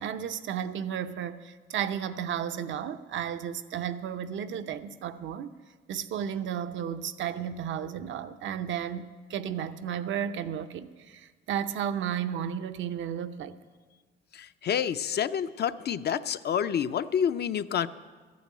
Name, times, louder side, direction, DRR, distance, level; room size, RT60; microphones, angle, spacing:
voice 1, 0.0-5.5 5.9-13.6, right 9 dB, 70° right, 10 dB, 0.7 m, -33 dB
voice 2, 14.3-17.9, left 8 dB, 55° left, 12 dB, 0.6 m, -28 dB
14.0 x 9.4 x 8.6 m, 1.4 s
cardioid pair, 90°, 20 cm